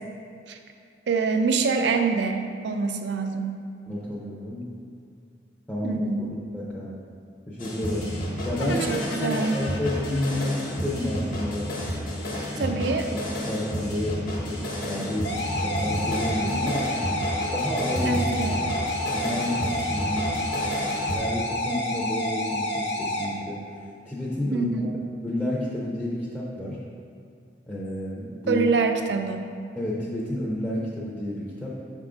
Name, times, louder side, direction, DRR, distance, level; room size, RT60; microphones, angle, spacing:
voice 1, 1.1-3.6 5.8-6.3 8.6-9.6 12.6-13.1 18.0-18.6 24.5-24.9 28.5-29.5, right 4 dB, 65° right, 6 dB, 0.5 m, -25 dB
voice 2, 3.9-4.6 5.7-6.1 6.3-6.9 7.5-8.1 8.4-8.8 9.2-11.7 12.5-12.8 13.1-13.2 13.5-16.9 17.5-18.5 19.1-20.4 21.1-23.6 24.1-24.9 25.2-26.8 27.7-28.7 29.8-31.8, left 1 dB, 5° left, -7 dB, 0.6 m, -30 dB
sound 1, 7.6-21.2, equal, 50° left, 1.2 m, -31 dB
sound 2, 8.6-11.7, left 3 dB, 85° left, 0.5 m, -39 dB
sound 3, 15.2-23.3, left 1 dB, 70° left, 0.9 m, -29 dB
6.2 x 3.7 x 4.9 m, 2.4 s
head